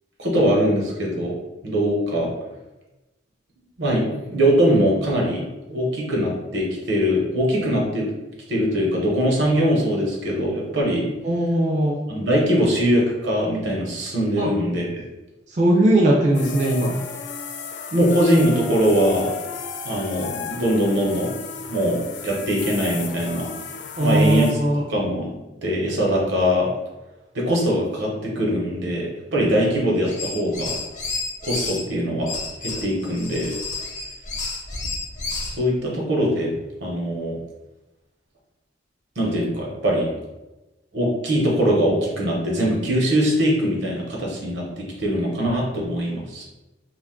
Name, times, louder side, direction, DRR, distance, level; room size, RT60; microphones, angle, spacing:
voice 1, 0.2-1.4 1.6-2.3 3.8-5.4 5.7-8.1 8.5-11.1 12.1-15.0 17.9-19.3 19.8-21.3 21.7-23.5 24.0-24.6 24.9-25.3 25.6-26.7 27.3-30.8 31.4-32.3 32.6-33.5 35.5-36.5 36.8-37.4 39.2-40.1 40.9-46.4, equal, 75° right, -2 dB, 0.8 m, -22 dB
voice 2, 11.2-12.0 14.4-14.5 15.5-16.9 24.0-24.8, right 1 dB, 40° right, -3 dB, 0.4 m, -19 dB
sound 1, 16.3-24.5, left 6 dB, 70° left, 0.3 m, -34 dB
sound 2, 30.0-31.8 32.3-35.6, left 3 dB, 45° left, 0.7 m, -30 dB
2.5 x 2.3 x 3.6 m, 1.1 s
head